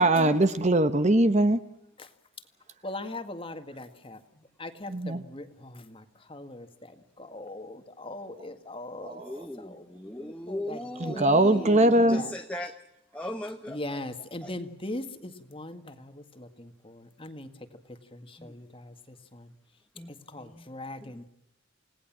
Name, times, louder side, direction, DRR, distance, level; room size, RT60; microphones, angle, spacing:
voice 1, 0.0-1.6 4.9-5.2 9.0-9.4 11.0-12.3, right 1 dB, 35° right, 1.1 m, -22 dB
voice 2, 2.8-4.2 4.6-9.2 9.6-10.8 11.1-12.3 13.7-17.5 17.9-19.5 20.3-21.2, left 1 dB, 25° left, 1.9 m, -40 dB
voice 3, 9.2-12.7 13.1-14.0 14.4-14.5 18.4-18.5 20.0-20.7 21.0-21.2, left 1 dB, 5° left, 1.2 m, -38 dB
29.5 x 18.5 x 7.5 m
head